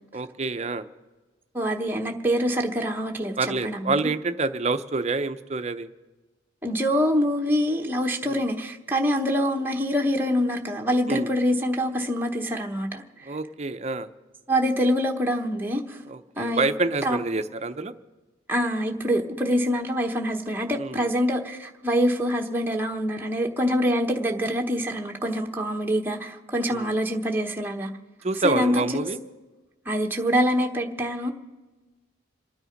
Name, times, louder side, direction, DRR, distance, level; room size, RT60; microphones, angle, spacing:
voice 1, 0.1-0.9 3.4-5.9 8.2-8.4 11.1-11.3 13.3-14.1 16.1-17.9 20.8-21.1 26.7-26.9 28.2-29.2, right 3 dB, 35° right, 10 dB, 0.7 m, -27 dB
voice 2, 1.5-3.4 3.6-4.1 6.6-13.0 14.5-16.0 16.4-16.6 17.0-17.2 18.5-27.9 28.4-29.1 29.9-31.3, equal, 10° right, 1 dB, 1.0 m, -25 dB
27.0 x 9.8 x 5.2 m, 1.2 s
head